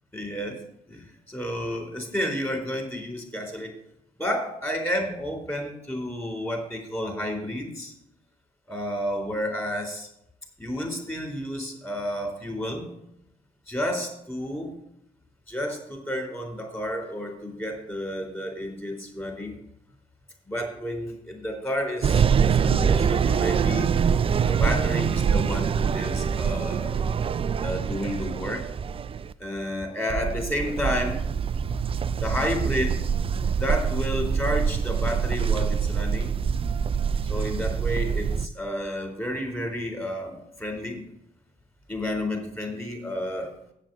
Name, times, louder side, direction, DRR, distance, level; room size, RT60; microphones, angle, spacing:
voice 1, 0.1-0.6 0.9-3.7 4.2-7.9 8.7-10.1 10.6-12.9 13.7-14.7 15.5-19.5 20.5-23.9 24.5-27.0 27.6-28.6 29.4-31.2 32.2-33.0 33.6-36.3 37.3-41.0 41.9-43.5, equal, 10° left, 2 dB, 3.9 m, -31 dB
sound 1, 22.0-29.3 30.1-38.5, right 7 dB, 30° right, 0.3 m, -25 dB
7.5 x 7.1 x 7.0 m, 0.76 s
hypercardioid pair, 50°, 20 cm